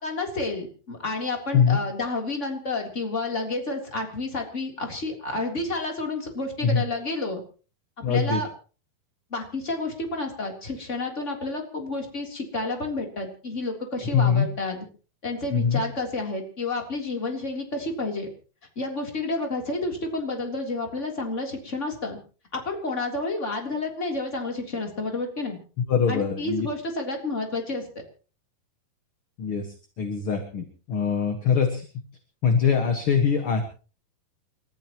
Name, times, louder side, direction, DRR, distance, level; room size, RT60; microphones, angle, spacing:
voice 1, 0.0-7.4 8.0-8.5 9.3-14.9 15.2-18.3 18.8-22.2 22.5-25.6 26.1-27.9, left 2 dB, 20° left, 2 dB, 3.5 m, -30 dB
voice 2, 8.0-8.4 14.1-14.5 15.5-15.8 25.9-26.7 29.4-31.9 32.4-33.6, left 6 dB, 45° left, 5 dB, 1.9 m, -23 dB
29.5 x 14.0 x 3.1 m, 0.37 s
omnidirectional pair, 4.3 m